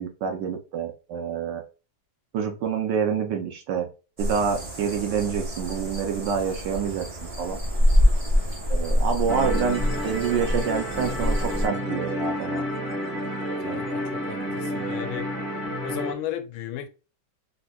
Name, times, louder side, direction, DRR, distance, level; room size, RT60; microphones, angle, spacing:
voice 1, 0.0-1.6 2.3-3.9 4.2-7.1 7.4-7.6 8.7-12.6 13.6-13.8, right 7 dB, 70° right, 1.1 m, -27 dB
sound 1, 4.2-11.7, left 1 dB, 45° right, 0.4 m, -25 dB
sound 2, 9.3-16.1, equal, 25° left, 1.4 m, -30 dB
voice 2, 13.6-15.3 15.8-16.9, left 11 dB, 80° left, 1.3 m, -35 dB
3.4 x 2.9 x 2.3 m
omnidirectional pair, 2.2 m